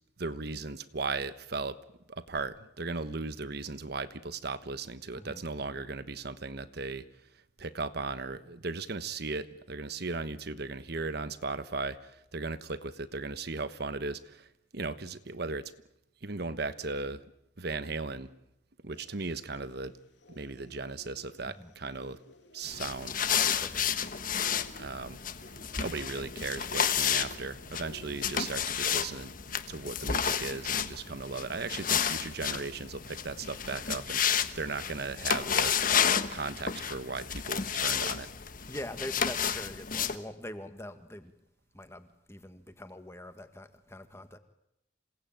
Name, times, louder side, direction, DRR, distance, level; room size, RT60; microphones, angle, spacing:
voice 1, 0.2-1.8 2.1-7.0 7.6-14.5 14.7-15.7 16.2-17.2 17.6-18.3 18.8-19.9 20.3-22.2 22.5-23.1 24.8-25.2 25.8-29.3 29.7-34.2 34.6-35.9 36.3-38.3, right 3 dB, 60° right, 12 dB, 1.2 m, -37 dB
sound 1, 18.9-28.6, equal, 70° left, 3.1 m, -55 dB
sound 2, 22.6-40.2, left 8 dB, 50° left, 1.4 m, -31 dB
voice 2, 38.7-41.3 41.7-44.4, left 1 dB, 15° left, 9 dB, 1.8 m, -43 dB
27.5 x 18.0 x 9.1 m, 0.83 s
head